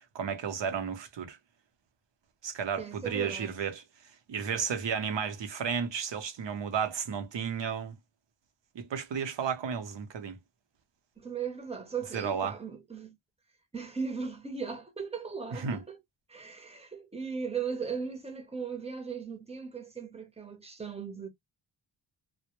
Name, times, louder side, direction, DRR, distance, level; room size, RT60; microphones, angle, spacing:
voice 1, 0.1-1.4 2.4-3.8 4.3-7.9 8.7-10.4 12.1-12.6 15.5-15.8, right 7 dB, 60° right, 0.7 m, -33 dB
voice 2, 2.8-3.5 11.2-13.2 13.7-16.0 16.3-21.3, right 6 dB, 15° right, 0.7 m, -37 dB
2.1 x 2.1 x 2.9 m
wide cardioid pair, 95°, 48 cm